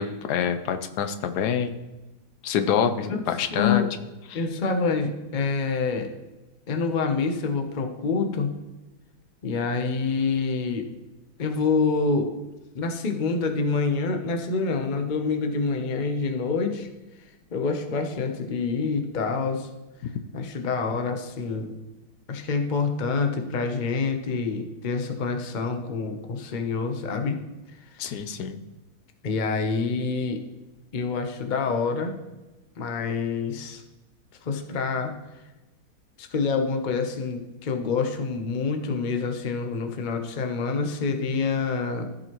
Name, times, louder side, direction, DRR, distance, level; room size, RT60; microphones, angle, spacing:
voice 1, 0.0-1.8 2.4-3.8 4.3-4.4 28.0-28.6, left 7 dB, 80° left, 9 dB, 1.2 m, -26 dB
voice 2, 3.5-3.9 4.3-6.1 6.7-8.5 9.4-10.9 11.4-12.3 12.7-16.9 17.5-19.7 20.3-21.7 22.3-27.4 27.9-28.2 29.2-30.4 30.9-32.1 32.8-33.8 34.4-35.1 36.2-42.1, left 4 dB, 40° left, 5 dB, 0.8 m, -27 dB
14.5 x 5.2 x 3.0 m, 1.1 s
omnidirectional pair, 1.7 m